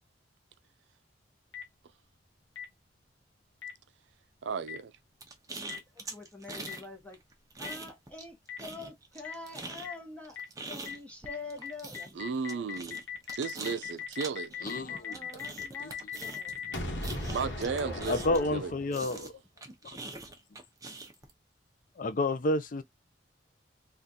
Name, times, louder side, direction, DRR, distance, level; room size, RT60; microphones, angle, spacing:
Boom, 1.5-1.6 2.6-2.7 3.6-3.7 4.7-4.8 5.7-5.8 6.7-6.8 7.6-7.7 8.5-8.6 9.2-9.3 9.8-9.9 10.4-10.5 10.9-11.0 11.3-11.4 11.6-19.2, left 4 dB, 80° left, 1.2 m, -38 dB
voice 1, 4.4-4.9 12.1-13.0 13.4-14.5 17.3-18.7 19.0-19.3, right 5 dB, 75° right, 0.4 m, -34 dB
sound 1, 5.2-6.9 7.1-8.3 8.6-18.6 18.9-21.3, right 3 dB, 20° right, 0.7 m, -43 dB
voice 2, 5.6-7.2 7.6-10.4 10.7-12.1 12.5-12.7 14.8-18.5, left 2 dB, 5° left, 1.0 m, -46 dB
voice 3, 14.6-15.3 15.8-15.9 16.6-17.1 18.1-19.4 19.8-20.0 22.0-22.8, left 2 dB, 45° left, 0.5 m, -31 dB
3.6 x 2.4 x 2.7 m
head